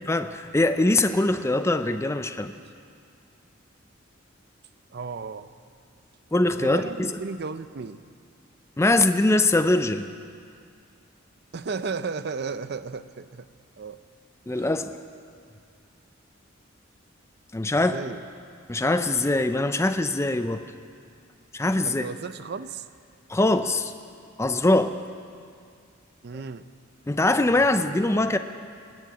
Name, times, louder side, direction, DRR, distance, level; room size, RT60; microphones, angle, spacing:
voice 1, 0.1-2.5 6.3-7.1 8.8-10.1 14.5-14.9 17.5-18.0 18.7-20.7 21.5-22.0 23.3-23.9 24.4-25.0 27.1-28.4, left 2 dB, 15° left, 9 dB, 0.5 m, -22 dB
voice 2, 4.9-5.5 6.6-8.0 11.5-13.5 13.8-14.0 14.5-14.7 17.7-18.2 21.8-22.9 26.2-26.6, right 4 dB, 55° right, 13 dB, 0.5 m, -34 dB
20.5 x 7.8 x 8.9 m, 2.2 s
head